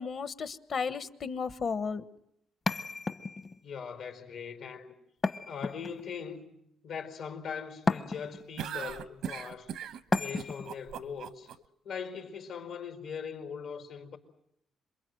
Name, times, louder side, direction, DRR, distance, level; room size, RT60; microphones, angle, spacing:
voice 1, 0.0-2.0, left 5 dB, 55° left, 1.2 m, -34 dB
sound 1, 2.7-3.6 5.2-6.2 7.9-8.5 10.1-10.7, left 3 dB, 35° left, 0.9 m, -32 dB
voice 2, 3.6-4.9 5.5-6.5 6.8-9.7 10.2-11.5 11.8-14.2, left 6 dB, 85° left, 4.5 m, -40 dB
sound 2, 8.6-11.5, right 8 dB, 85° right, 0.9 m, -38 dB
27.5 x 23.0 x 7.8 m
cardioid pair, 90°, 0 cm